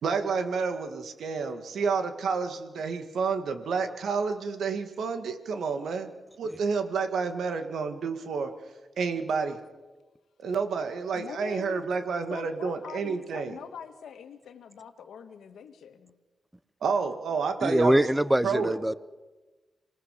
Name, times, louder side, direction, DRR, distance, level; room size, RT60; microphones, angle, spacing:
voice 1, 0.0-6.1 6.4-8.5 9.0-9.6 10.4-13.6 16.8-18.0 18.4-18.8, right 5 dB, 75° right, 7 dB, 2.3 m, -29 dB
voice 2, 11.1-16.2, left 7 dB, 85° left, 8 dB, 1.8 m, -44 dB
voice 3, 17.6-18.9, right 1 dB, 10° right, 16 dB, 0.9 m, -23 dB
27.0 x 20.0 x 6.9 m, 1.2 s
cardioid pair, 75°, 0 cm